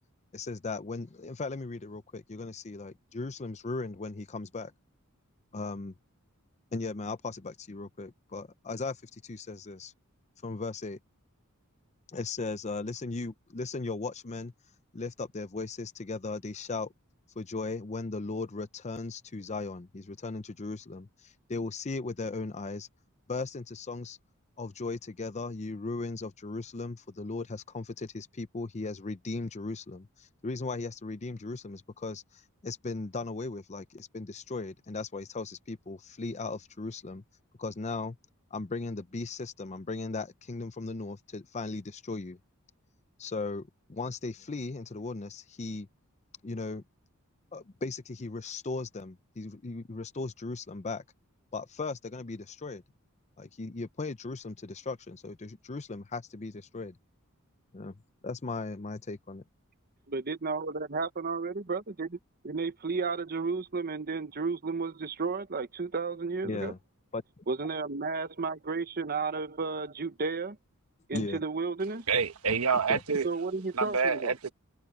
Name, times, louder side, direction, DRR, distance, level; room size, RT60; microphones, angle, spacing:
voice 1, 0.3-4.7 5.5-5.9 6.7-9.9 10.4-11.0 12.1-14.5 14.9-16.9 17.4-22.9 23.3-24.2 24.6-37.2 37.6-38.2 38.5-42.4 43.2-45.9 46.4-46.8 47.5-51.0 51.5-52.8 53.4-57.0 57.7-57.9 58.2-59.4 66.4-66.8 67.1-67.4 71.1-71.4 72.9-73.0, left 3 dB, 30° left, 0.6 m, -37 dB
voice 2, 60.1-62.2 62.4-66.7 67.5-70.6 71.1-72.0 73.2-74.3, right 4 dB, 45° right, 1.1 m, -33 dB
voice 3, 72.1-73.3 73.7-74.5, right 5 dB, 85° right, 1.3 m, -27 dB
head